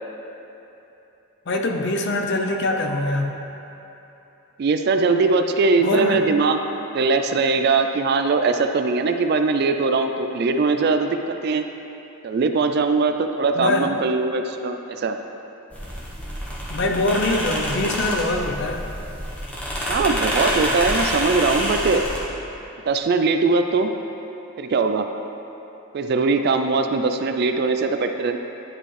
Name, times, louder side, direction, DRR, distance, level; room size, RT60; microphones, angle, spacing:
voice 1, 1.5-3.4 5.8-6.2 13.6-13.9 16.7-18.8, left 2 dB, 50° left, 3 dB, 0.5 m, -23 dB
voice 2, 4.6-6.6 6.9-11.7 12.2-15.2 19.9-22.1 22.9-23.9 24.6-25.1 25.9-28.4, right 4 dB, 45° right, 7 dB, 0.3 m, -21 dB
sound 1, 15.7-22.2, equal, 5° left, 1.0 m, -27 dB
10.0 x 5.0 x 3.2 m, 3.0 s
head